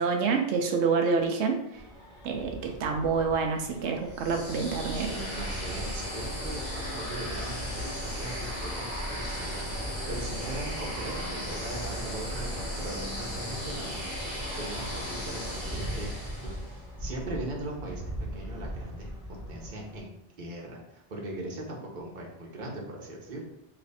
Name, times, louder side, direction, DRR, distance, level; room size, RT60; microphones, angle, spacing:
voice 1, 0.0-1.8 2.2-5.1, right 5 dB, 90° right, 3 dB, 0.9 m, -27 dB
sound 1, 1.7-20.0, right 1 dB, 5° left, 1.2 m, -42 dB
sound 2, 4.1-16.8, equal, 40° left, 1.9 m, -35 dB
voice 2, 4.9-14.0 14.5-16.1 16.4-19.1 19.5-23.4, right 2 dB, 45° right, -2 dB, 1.1 m, -40 dB
3.4 x 3.2 x 4.1 m, 0.86 s
omnidirectional pair, 1.1 m